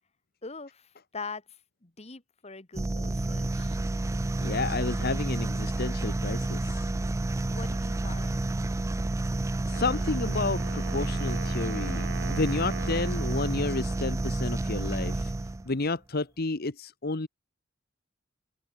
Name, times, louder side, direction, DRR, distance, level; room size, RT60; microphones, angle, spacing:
voice 1, 0.4-1.4 1.8-3.8 7.5-8.4, left 4 dB, 35° left, 1.9 m, -42 dB
sound 1, 2.7-15.7, right 2 dB, 15° right, 0.3 m, -30 dB
voice 2, 4.4-6.9 9.7-15.3 15.6-17.3, left 3 dB, 50° left, 1.1 m, -31 dB
Wind instrument woodwind instrument, 9.7-14.7, right 3 dB, 65° right, 2.7 m, -42 dB
head